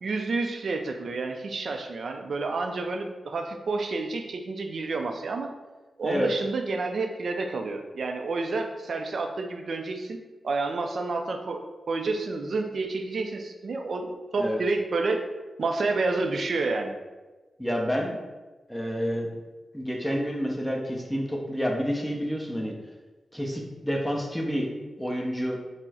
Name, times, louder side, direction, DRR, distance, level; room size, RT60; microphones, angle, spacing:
voice 1, 0.0-5.5 6.0-10.2 10.4-15.2 15.6-16.9, right 3 dB, 70° right, 4 dB, 0.4 m, -29 dB
voice 2, 17.6-18.2 18.7-19.3 19.7-22.7 23.3-24.7 25.0-25.6, equal, 5° left, -1 dB, 0.7 m, -29 dB
4.4 x 2.1 x 4.2 m, 1.2 s
cardioid pair, 50°, 0 cm